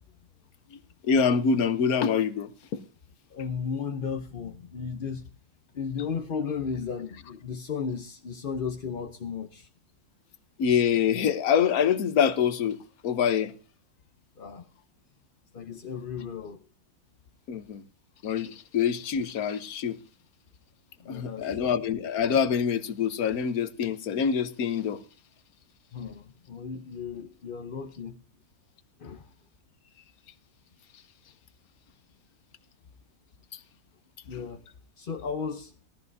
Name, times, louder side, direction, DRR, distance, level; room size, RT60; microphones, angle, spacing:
voice 1, 1.0-2.8 10.6-12.8 13.0-13.5 17.5-17.8 18.2-20.0 21.1-25.0, left 7 dB, 70° left, 1.3 m, -25 dB
voice 2, 3.3-5.3 5.7-9.7 14.4-14.7 15.5-16.6 21.0-21.7 25.9-28.2 29.0-29.3 34.3-34.6 35.0-35.7, left 6 dB, 45° left, 0.8 m, -35 dB
17.0 x 14.0 x 2.7 m
omnidirectional pair, 1.7 m